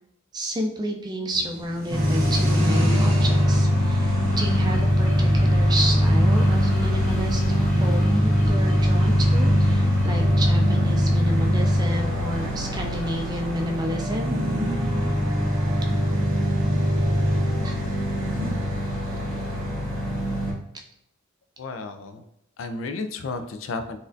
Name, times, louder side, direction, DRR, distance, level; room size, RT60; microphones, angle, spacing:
voice 1, 0.3-14.4 17.6-17.8, right 1 dB, 20° right, 2 dB, 0.4 m, -30 dB
sound 1, 1.3-7.4 8.1-8.2 8.4-8.5 8.6-8.9 9.8-9.9 10.1-10.2 11.0-12.5 14.0-16.6 18.0-18.5, equal, 45° right, 0.9 m, -34 dB
sound 2, 1.9-20.5, equal, 85° right, 1.0 m, -22 dB
sound 3, 4.3-13.7, equal, 40° left, 0.8 m, -35 dB
voice 2, 21.6-22.2 22.6-24.0, left 3 dB, 70° left, 8 dB, 0.4 m, -32 dB
4.1 x 2.4 x 2.5 m, 0.75 s
head